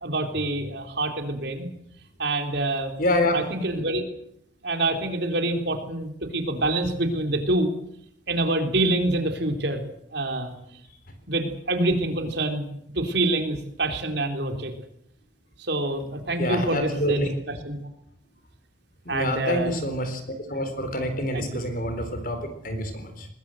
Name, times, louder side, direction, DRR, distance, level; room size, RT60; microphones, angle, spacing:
voice 1, 0.0-1.7 2.2-2.9 3.3-4.0 4.6-7.7 8.3-9.8 10.1-10.5 11.3-12.6 12.9-14.7 15.6-17.8 19.1-19.7 21.3-21.5, right 2 dB, 55° right, 5 dB, 3.8 m, -26 dB
voice 2, 3.0-3.4 16.4-17.3 19.1-20.2 20.5-23.3, left 1 dB, 45° left, 8 dB, 4.1 m, -27 dB
22.0 x 20.5 x 7.8 m, 0.73 s
head